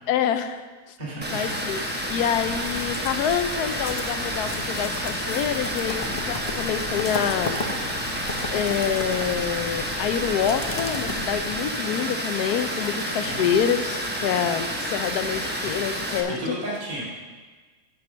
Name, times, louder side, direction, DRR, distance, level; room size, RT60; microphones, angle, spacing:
voice 1, 0.1-0.6 1.3-1.8 2.1-7.6 8.5-16.6, left 8 dB, 80° left, 10 dB, 1.1 m, -26 dB
voice 2, 1.0-1.4 13.2-13.6 16.4-17.0, right 1 dB, 25° right, -7 dB, 2.4 m, -32 dB
Water, 1.2-16.2, equal, 10° right, 0.8 m, -30 dB
sound 1, 2.0-11.7, left 3 dB, 35° left, 0.6 m, -36 dB
10.5 x 5.0 x 6.1 m, 1.4 s
omnidirectional pair, 1.7 m